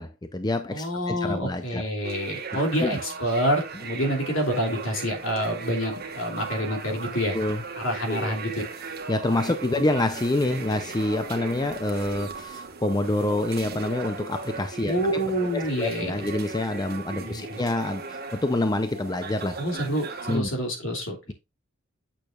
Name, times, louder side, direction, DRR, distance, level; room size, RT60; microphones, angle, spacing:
voice 1, 0.0-1.8 2.8-3.0 7.3-7.6 8.1-8.3 9.1-15.2 15.5-19.5 20.3-20.5, left 2 dB, 20° left, 0.5 m, -27 dB
voice 2, 0.7-7.4 7.8-8.6 14.9-16.3 17.2-17.6 19.6-21.2, equal, 70° left, 2.9 m, -27 dB
sound 1, 2.0-20.4, right 4 dB, 50° right, 1.4 m, -37 dB
8.5 x 6.7 x 2.4 m
head